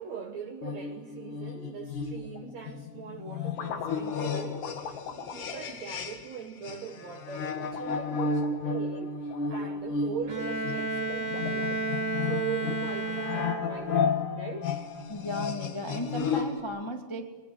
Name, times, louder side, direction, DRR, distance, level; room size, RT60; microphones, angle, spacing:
voice 1, 0.0-11.8 12.2-14.7, right 7 dB, 65° right, 1.8 m, -40 dB
sound 1, 0.6-6.4 6.6-16.6, left 5 dB, 55° left, 3.2 m, -33 dB
sound 2, 2.2-2.5 3.1-6.7 7.5-10.2 10.8-12.1, left 7 dB, 90° left, 4.0 m, -43 dB
Bowed string instrument, 10.3-14.0, right 2 dB, 35° right, 3.2 m, -32 dB
voice 2, 15.1-17.3, equal, 30° left, 0.5 m, -35 dB
28.0 x 22.0 x 8.0 m
omnidirectional pair, 4.7 m